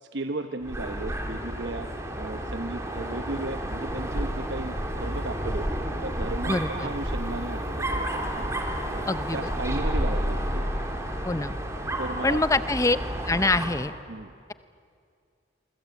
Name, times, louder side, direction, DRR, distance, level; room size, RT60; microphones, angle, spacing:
voice 1, 0.0-1.9 2.1-5.7 6.0-8.5 8.9-10.6 12.0-12.4 14.1-14.3, right 2 dB, 65° right, 7 dB, 1.0 m, -35 dB
Dog, 0.6-13.9, equal, 15° right, 2.4 m, -31 dB
voice 2, 6.5-6.9 9.1-9.8 11.3-11.6 12.2-13.0 13.3-13.9, left 2 dB, 15° left, 14 dB, 0.6 m, -25 dB
27.5 x 24.0 x 8.4 m, 2.3 s
head